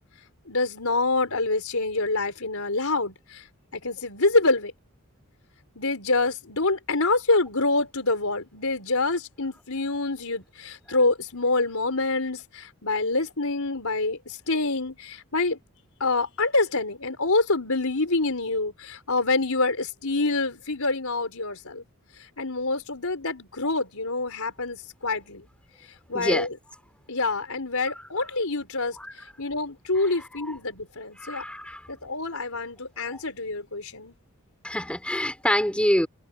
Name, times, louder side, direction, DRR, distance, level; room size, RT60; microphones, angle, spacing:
voice 1, 0.5-3.4 3.7-4.7 5.8-15.6 16.0-21.8 22.4-25.5 26.1-26.5 27.1-29.0 29.4-31.4 31.9-34.2, left 3 dB, 70° left, 5.5 m, -26 dB
voice 2, 26.1-26.5 27.9-28.1 29.0-29.1 29.9-30.5 31.2-31.8 33.1-33.2 34.6-36.1, left 1 dB, 5° left, 6.8 m, -27 dB
head